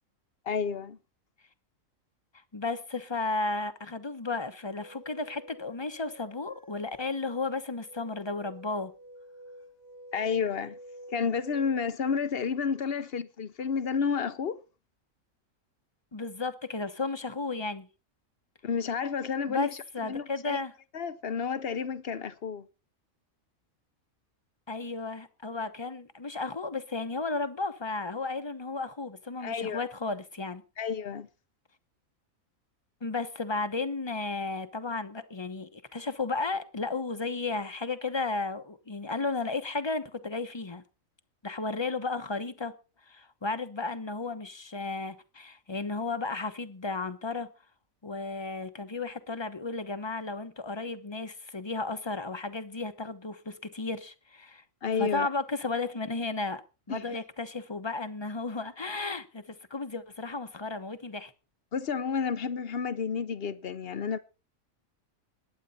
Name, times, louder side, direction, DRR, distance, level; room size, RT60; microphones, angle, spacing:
voice 1, 0.5-1.0 10.1-10.8 11.1-14.6 18.6-20.6 20.9-22.7 29.4-29.9 30.8-31.3 54.8-55.3 56.9-57.2 61.7-64.2, left 6 dB, 50° left, 1.0 m, -31 dB
voice 2, 2.5-8.9 16.1-17.9 19.5-19.7 19.9-20.7 24.7-30.6 33.0-40.8 41.4-42.7 43.1-47.5 48.0-54.6 55.0-56.6 56.9-61.3, left 3 dB, 20° left, 1.0 m, -34 dB
sound 1, 4.8-11.9, equal, 75° left, 2.1 m, -50 dB
20.5 x 9.1 x 4.2 m
omnidirectional pair, 1.4 m